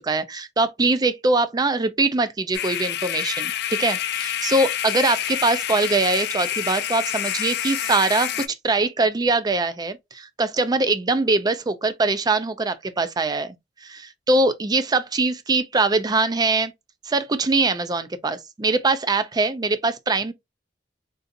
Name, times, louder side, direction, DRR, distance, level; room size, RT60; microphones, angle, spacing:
voice 1, 0.0-3.5 3.8-13.5 13.8-16.7 17.1-20.3, right 3 dB, 20° right, 0.4 m, -22 dB
sound 1, 2.5-8.5, left 11 dB, 60° left, 0.4 m, -27 dB
3.8 x 2.4 x 2.5 m
head